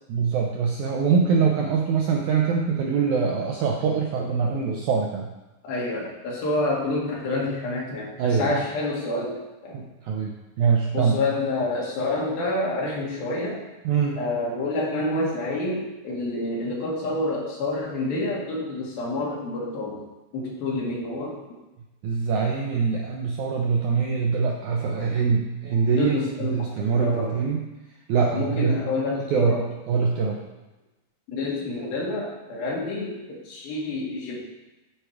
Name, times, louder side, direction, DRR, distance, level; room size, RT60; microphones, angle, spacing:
voice 1, 0.1-5.3 8.2-8.6 9.7-10.3 10.6-11.2 13.9-14.2 22.0-26.2 26.5-27.6 28.1-28.8 29.3-29.5 29.9-30.4, right 5 dB, 75° right, 0 dB, 1.8 m, -23 dB
voice 2, 5.6-9.8 10.9-13.6 14.2-20.0 20.3-21.4 25.8-26.7 27.0-27.3 28.2-29.7 31.3-34.4, left 2 dB, 80° left, -4 dB, 3.8 m, -28 dB
12.0 x 4.6 x 4.9 m, 1.0 s
omnidirectional pair, 4.2 m